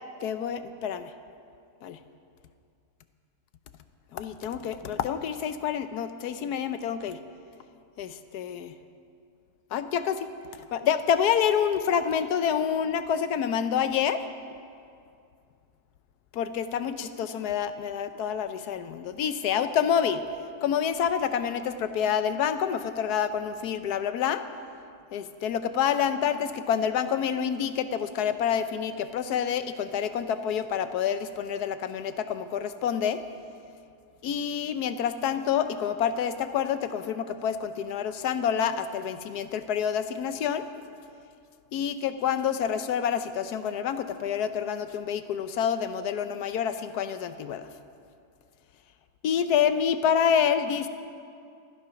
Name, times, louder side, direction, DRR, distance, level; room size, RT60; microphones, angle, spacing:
voice 1, 0.2-1.1 1.8-2.0 4.1-7.2 8.0-8.7 9.7-10.3 10.7-14.2 16.3-20.2 20.6-24.4 25.1-33.2 34.2-40.7 41.7-47.7 49.2-50.9, left 8 dB, 85° left, 10 dB, 1.3 m, -27 dB
15.0 x 12.0 x 5.8 m, 2.4 s
omnidirectional pair, 1.6 m